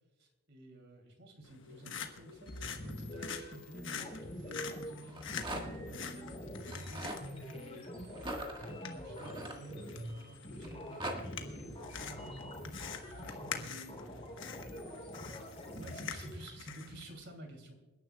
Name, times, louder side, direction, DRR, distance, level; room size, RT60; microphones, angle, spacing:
voice 1, 0.2-14.0 14.4-17.7, right 1 dB, 50° right, 4 dB, 2.8 m, -53 dB
Pencil Sharpener, 1.4-17.0, left 6 dB, 55° left, 1.3 m, -46 dB
sound 1, 2.5-16.4, equal, 25° left, 3.3 m, -45 dB
Rattle, 5.0-5.9 6.6-7.2 8.1-10.1 10.6-11.2, right 1 dB, 20° right, 1.6 m, -41 dB
28.5 x 10.5 x 2.3 m, 1.3 s
head